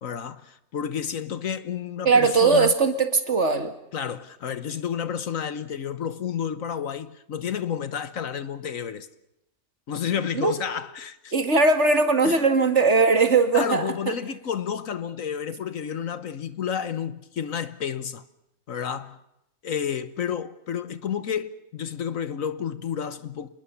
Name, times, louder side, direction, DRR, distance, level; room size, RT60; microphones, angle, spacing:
voice 1, 0.0-2.7 3.9-9.1 9.9-11.3 12.2-12.4 13.5-18.2 18.7-19.2 19.6-23.5, left 8 dB, 65° left, 1.4 m, -30 dB
voice 2, 2.0-3.7 10.3-10.6 11.3-14.1, right 4 dB, 50° right, 2.4 m, -20 dB
27.0 x 21.0 x 7.0 m
omnidirectional pair, 1.6 m